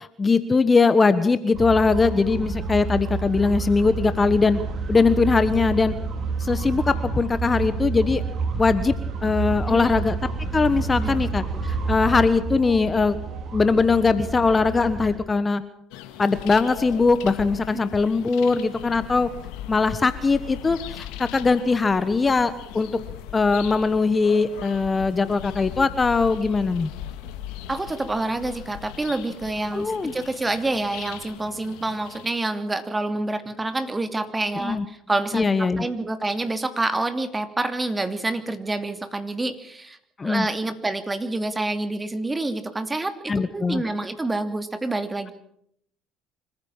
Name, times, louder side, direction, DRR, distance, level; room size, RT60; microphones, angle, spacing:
voice 1, 0.0-4.6 4.9-5.9 6.4-8.2 8.6-8.9 9.2-10.2 10.5-13.2 13.5-15.6 16.2-19.3 19.7-23.0 23.3-26.9 29.7-30.1 34.5-34.8 35.3-35.8 40.2-40.5 43.3-43.8, left 4 dB, 25° left, 13 dB, 1.3 m, -21 dB
sound 1, 1.5-15.2, right 4 dB, 50° right, 4.8 m, -29 dB
sound 2, 15.9-32.3, left 11 dB, 75° left, 2.0 m, -39 dB
voice 2, 27.7-40.0 40.2-45.3, right 2 dB, 20° right, 9 dB, 2.9 m, -27 dB
25.5 x 15.0 x 7.4 m, 0.69 s
hypercardioid pair, 65°, 0 cm